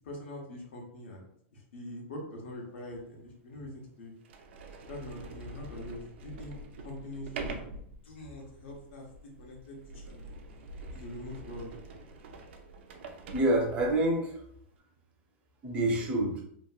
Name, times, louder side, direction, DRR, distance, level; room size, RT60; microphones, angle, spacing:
voice 1, 0.0-1.3 1.7-4.1 4.8-6.5 6.8-7.5 8.0-9.1 9.4-10.2 10.9-11.7, left 1 dB, 80° left, -1 dB, 1.0 m, -43 dB
Sliding door, 2.8-2.9 3.7-3.8 4.2-14.1, right 3 dB, 70° right, 0.4 m, -45 dB
voice 2, 13.3-14.4 15.6-16.4, right 1 dB, 20° right, 0 dB, 0.5 m, -27 dB
2.9 x 2.7 x 2.3 m, 0.69 s
supercardioid pair, 170°, 6 cm